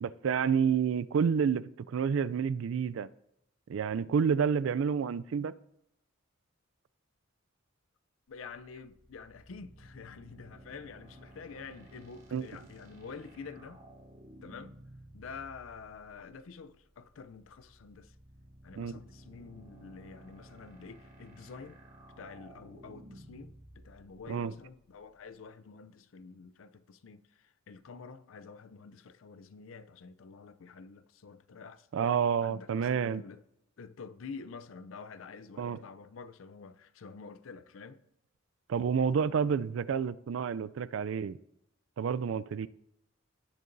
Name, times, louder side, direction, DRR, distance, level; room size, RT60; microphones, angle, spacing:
voice 1, 0.0-3.1 3.7-5.5 12.3-12.5 18.8-19.0 24.3-24.5 31.9-33.2 35.6-35.8 38.7-41.4 42.0-42.7, right 6 dB, 75° right, 0.3 m, -29 dB
voice 2, 8.3-13.8 14.4-14.7 15.1-18.2 18.6-21.8 22.2-31.9 32.4-33.4 33.8-38.0, left 5 dB, 90° left, 0.5 m, -48 dB
sound 1, 8.3-25.5, right 1 dB, 50° right, 2.8 m, -55 dB
17.0 x 6.8 x 2.6 m
head